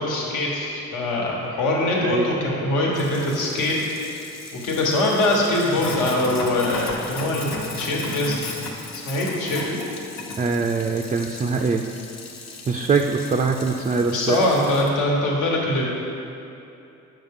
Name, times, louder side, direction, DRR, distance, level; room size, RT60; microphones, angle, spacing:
voice 1, 0.0-3.7 4.5-8.4 8.9-9.8 14.0-15.9, left 1 dB, 85° left, -3 dB, 1.4 m, -23 dB
Sink (filling or washing), 2.9-14.9, left 4 dB, 60° left, 1.0 m, -36 dB
voice 2, 10.4-11.9 12.7-14.4, right 4 dB, 25° right, 2 dB, 0.3 m, -22 dB
7.5 x 5.5 x 3.6 m, 2.8 s
cardioid pair, 90°, 30 cm